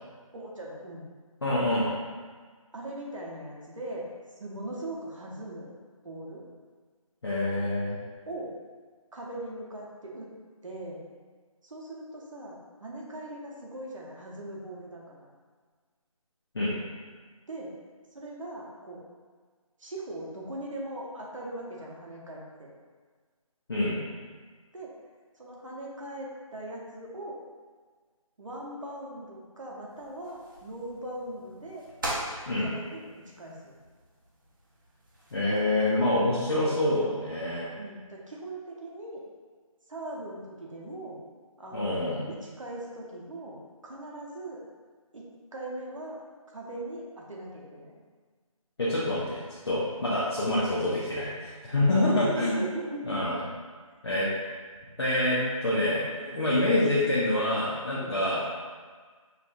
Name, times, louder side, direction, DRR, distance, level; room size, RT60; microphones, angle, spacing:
voice 1, 0.3-1.1 2.7-4.1 4.4-5.7 6.0-6.4 8.3-8.5 9.1-10.3 10.6-11.0 11.6-15.2 17.5-17.7 18.1-19.0 19.8-22.7 24.7-24.9 25.4-27.4 28.4-31.8 32.6-33.0 33.4-33.7 37.8-39.2 39.9-41.2 41.6-42.0 42.3-44.6 45.1-46.2 46.5-48.0 51.9-53.4 54.2-54.3 56.3-56.5 58.0-58.2, right 1 dB, 60° right, -3 dB, 1.0 m, -40 dB
voice 2, 1.4-1.9 7.2-8.0 16.5-16.7 23.7-24.0 32.5-32.7 35.3-37.7 41.7-42.2 48.8-52.6 53.1-53.4 54.0-54.3 55.0-58.4, left 1 dB, 45° left, -8 dB, 0.7 m, -26 dB
sound 1, 29.9-36.1, right 1 dB, 35° right, 0.8 m, -41 dB
5.5 x 2.6 x 2.5 m, 1.5 s
figure-of-eight pair, 160°, 18 cm